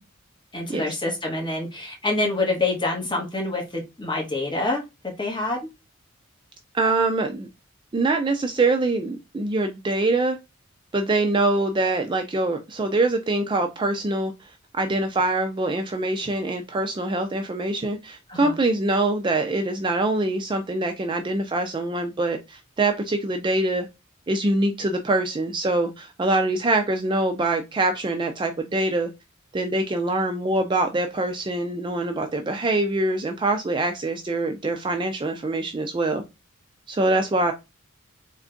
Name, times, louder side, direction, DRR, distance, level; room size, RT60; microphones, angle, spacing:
voice 1, 0.5-5.6 18.3-18.5, left 2 dB, 25° left, 1.3 m, -26 dB
voice 2, 6.7-7.5 7.9-10.4 10.9-23.9 24.3-29.1 29.5-36.2 36.9-37.5, right 2 dB, 25° right, 0.4 m, -24 dB
3.5 x 2.2 x 3.7 m
head